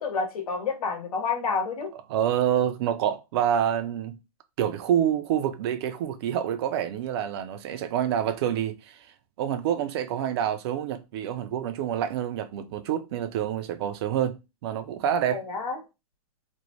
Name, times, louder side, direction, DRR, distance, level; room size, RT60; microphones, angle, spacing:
voice 1, 0.0-1.9 15.3-15.8, left 5 dB, 70° left, 1.1 m, -29 dB
voice 2, 2.1-4.2 4.6-15.4, right 10 dB, 45° right, 0.4 m, -27 dB
2.5 x 2.1 x 3.0 m
hypercardioid pair, 130°, 19 cm